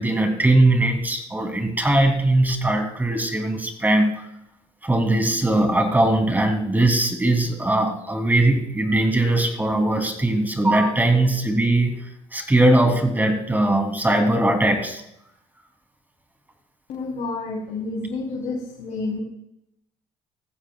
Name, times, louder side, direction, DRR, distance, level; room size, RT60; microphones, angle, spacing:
voice 1, 0.0-4.3 4.8-12.0 12.3-15.0, right 1 dB, 15° right, 4 dB, 3.2 m, -20 dB
voice 2, 16.9-19.2, left 3 dB, 75° left, -3 dB, 3.4 m, -29 dB
19.0 x 15.0 x 2.4 m, 0.81 s
cardioid pair, 90°, 12 cm